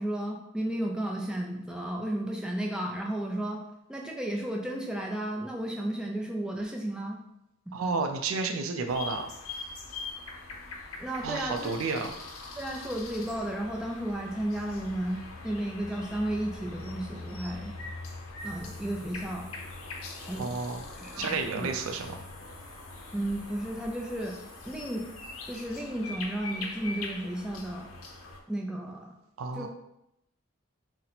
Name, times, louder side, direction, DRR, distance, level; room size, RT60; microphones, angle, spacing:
voice 1, 0.0-3.6 3.9-7.2 7.7-7.8 11.0-11.8 12.6-17.7 18.4-19.5 20.2-20.5 21.0-21.7 23.1-24.4 24.6-25.1 25.5-27.9 28.5-29.1 29.5-29.7, right 1 dB, 5° right, 0 dB, 0.3 m, -33 dB
voice 2, 7.7-9.3 11.2-12.1 20.4-20.8 21.2-22.2 29.4-29.7, right 4 dB, 85° right, 5 dB, 0.4 m, -31 dB
sound 1, 8.9-28.4, left 3 dB, 90° left, 0.5 m, -42 dB
sound 2, 18.4-25.7, left 2 dB, 40° left, 1.0 m, -55 dB
2.8 x 2.0 x 4.0 m, 0.84 s
head